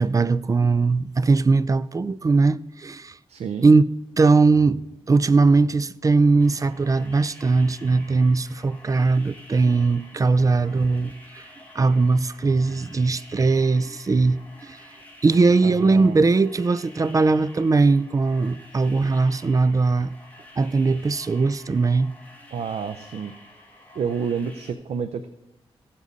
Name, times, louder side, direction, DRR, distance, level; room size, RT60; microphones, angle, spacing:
voice 1, 0.0-3.2 3.6-3.8 4.2-11.4 11.8-14.8 15.2-20.1 20.6-22.1, right 3 dB, 30° right, 0.4 m, -20 dB
voice 2, 3.3-3.7 15.6-16.2 22.5-23.3 23.9-25.3, right 6 dB, 85° right, 0.6 m, -29 dB
sound 1, 6.4-24.7, left 1 dB, 15° left, 2.3 m, -49 dB
15.5 x 7.3 x 4.0 m
cardioid pair, 85°, 11 cm